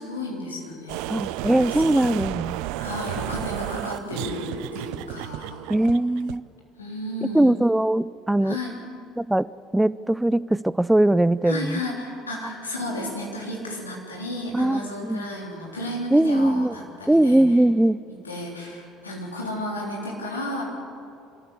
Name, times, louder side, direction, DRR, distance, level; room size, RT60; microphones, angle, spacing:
voice 1, 0.0-2.3 2.8-5.7 6.8-7.6 8.4-8.7 11.4-17.4 18.2-20.6, left 1 dB, 85° left, -2 dB, 3.5 m, -33 dB
sound 1, 0.9-6.4, right 16 dB, 65° right, 0.5 m, -32 dB
voice 2, 1.1-2.6 5.7-6.4 7.3-8.6 9.2-9.5 9.7-11.8 14.5-15.3 16.1-16.8 17.1-18.0, right 1 dB, 5° right, 19 dB, 0.4 m, -20 dB
26.0 x 14.0 x 8.3 m, 2.7 s
figure-of-eight pair, 60°, 0 cm